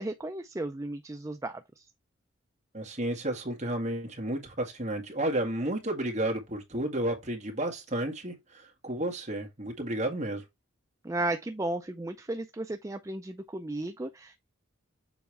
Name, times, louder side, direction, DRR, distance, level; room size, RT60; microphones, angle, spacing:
voice 1, 0.0-1.8 11.0-14.4, right 2 dB, 15° right, 0.4 m, -34 dB
voice 2, 2.7-10.4, right 1 dB, 35° right, 1.8 m, -32 dB
7.1 x 4.0 x 3.3 m
head